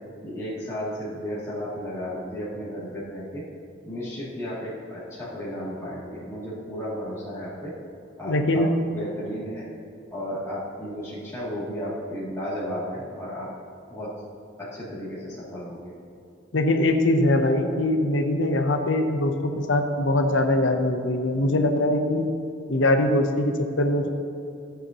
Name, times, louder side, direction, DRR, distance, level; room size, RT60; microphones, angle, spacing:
voice 1, 0.2-3.4 3.8-7.7 8.2-8.7 8.9-9.7 10.1-13.5 13.9-14.1 14.6-15.9, equal, 15° left, -12 dB, 2.7 m, -33 dB
voice 2, 8.2-8.7 16.5-22.3 22.7-24.1, left 1 dB, 75° left, 5 dB, 0.9 m, -22 dB
15.0 x 8.1 x 3.0 m, 2.7 s
head